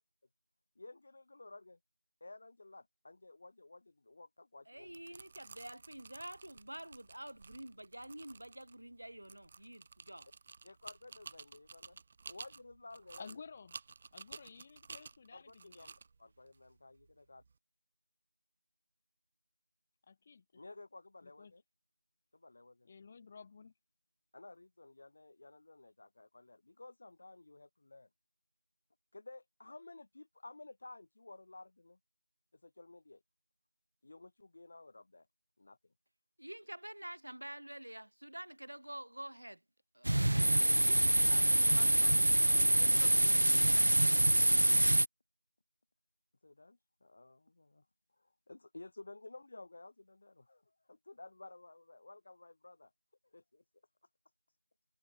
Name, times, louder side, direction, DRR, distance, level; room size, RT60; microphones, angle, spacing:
voice 1, 0.8-1.8 2.2-4.9 10.6-12.0 12.3-13.4 15.3-17.4 20.6-21.6 22.3-22.9 24.3-28.1 29.1-32.0 32.5-33.2 34.0-35.3 35.6-35.8 46.4-47.8 48.2-52.9 53.3-53.6, left 2 dB, 30° left, 5.5 m, -54 dB
voice 2, 4.7-10.3 36.4-39.6 39.9-42.2 42.7-43.9, right 1 dB, 75° right, 5.1 m, -48 dB
sound 1, 4.8-17.5, right 4 dB, 15° right, 3.9 m, -54 dB
voice 3, 13.2-13.8 14.1-15.9 20.1-20.6 21.2-21.5 22.8-23.7, left 5 dB, 15° left, 4.3 m, -53 dB
sound 2, 40.1-45.1, right 1 dB, 55° right, 1.0 m, -26 dB
figure-of-eight pair, 175°, 0 cm